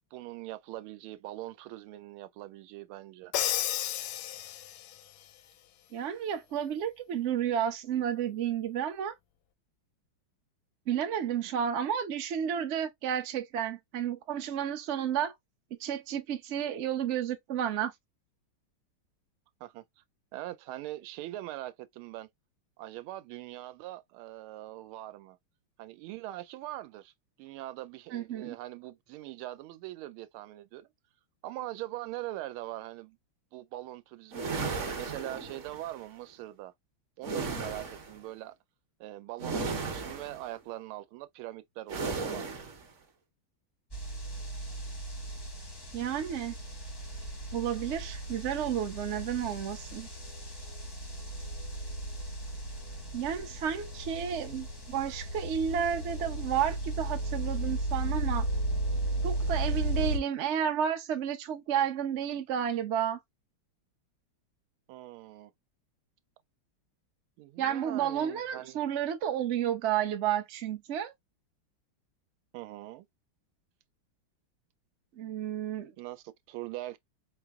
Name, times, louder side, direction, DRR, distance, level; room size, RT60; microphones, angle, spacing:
voice 1, 0.1-3.3 19.6-20.0 20.3-22.3 22.8-25.4 25.8-27.1 27.4-30.9 31.4-33.2 33.5-36.7 37.2-38.5 39.0-42.5 64.9-65.5 67.4-68.8 72.5-73.1 76.0-77.0, right 15 dB, 90° right, 1.5 m, -42 dB
Crash cymbal, 3.3-5.0, left 12 dB, 75° left, 1.0 m, -32 dB
voice 2, 5.9-9.2 10.9-15.3 15.8-17.9 28.1-28.5 45.9-46.6 47.5-50.1 53.1-58.5 59.2-63.2 67.6-71.1 75.2-75.9, right 9 dB, 70° right, 0.6 m, -31 dB
sound 1, 34.3-35.9 37.2-38.2 39.4-40.5 41.9-42.8, right 4 dB, 50° right, 1.0 m, -35 dB
sound 2, 43.9-60.2, right 1 dB, 30° left, 0.4 m, -35 dB
4.5 x 2.0 x 3.4 m
omnidirectional pair, 2.3 m